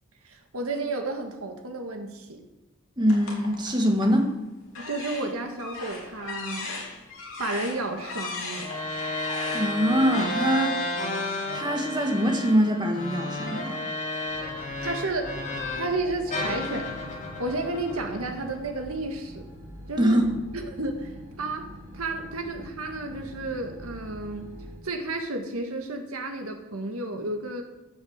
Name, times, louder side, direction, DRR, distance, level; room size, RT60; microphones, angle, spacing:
voice 1, 0.2-2.4 4.8-6.8 7.4-8.7 14.5-15.4 15.8-19.5 19.9-20.2 20.5-24.5 24.8-27.6, right 2 dB, 85° right, 4 dB, 1.9 m, -32 dB
voice 2, 3.0-4.4 9.5-10.8 11.5-13.8 20.0-20.3, equal, 20° right, 2 dB, 1.8 m, -23 dB
sound 1, 3.1-4.2 4.7-10.2, left 3 dB, 65° left, 3.2 m, -38 dB
sound 2, 8.6-16.0 16.3-18.7, left 2 dB, 35° left, 2.4 m, -32 dB
sound 3, 14.3-24.8, equal, 65° right, 4.0 m, -44 dB
15.0 x 6.5 x 7.3 m, 1.0 s
head